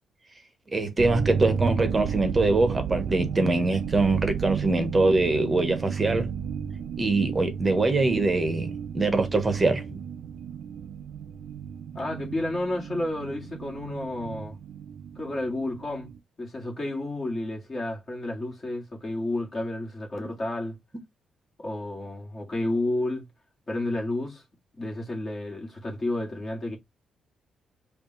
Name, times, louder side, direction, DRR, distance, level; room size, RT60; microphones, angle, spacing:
voice 1, 0.7-6.3 7.0-10.0, right 2 dB, 20° right, 1.0 m, -23 dB
sound 1, 1.0-16.2, right 7 dB, 85° right, 0.4 m, -33 dB
voice 2, 11.9-14.6 15.2-16.1 16.4-20.8 21.6-23.3 23.7-24.4 24.8-26.8, left 1 dB, 25° left, 1.9 m, -31 dB
5.0 x 2.5 x 3.1 m
cardioid pair, 150°, 0 cm